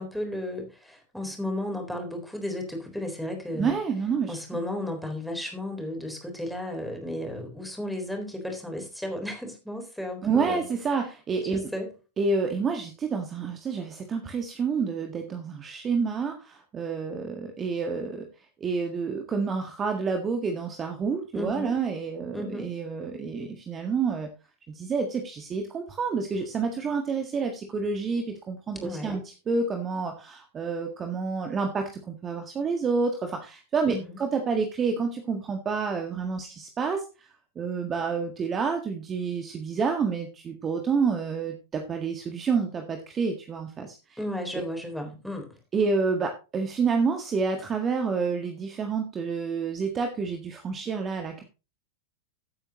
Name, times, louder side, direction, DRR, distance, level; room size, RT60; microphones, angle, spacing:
voice 1, 0.0-3.7 4.3-10.6 11.4-11.9 21.3-21.7 22.3-22.7 28.8-29.2 33.9-34.2 44.2-45.5, left 1 dB, ahead, 3 dB, 3.9 m, -34 dB
voice 2, 3.5-4.4 10.2-11.7 12.2-18.3 18.6-24.3 24.7-44.2 45.7-51.4, right 5 dB, 25° right, 5 dB, 1.6 m, -29 dB
15.5 x 8.9 x 3.0 m, 0.30 s
figure-of-eight pair, 90°, 0 cm